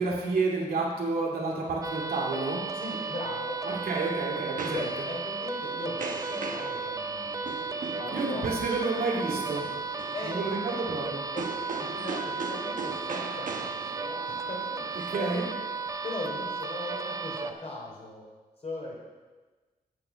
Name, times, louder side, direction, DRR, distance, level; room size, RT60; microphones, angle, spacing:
voice 1, 0.0-2.6 3.6-4.8 8.1-9.6 10.3-11.2 15.1-15.5, right 3 dB, 85° right, -3 dB, 2.2 m, -30 dB
sound 1, 1.8-17.5, right 4 dB, 25° right, 0.5 m, -35 dB
voice 2, 2.7-3.6 4.7-7.6 8.0-8.4 10.1-10.6 11.3-11.5 11.8-15.3 16.0-18.2 18.6-19.0, left 2 dB, 45° left, -2 dB, 3.2 m, -39 dB
sound 2, 3.4-15.9, right 4 dB, 60° right, 1.0 m, -40 dB
8.5 x 7.0 x 5.6 m, 1.3 s
cardioid pair, 90°, 15 cm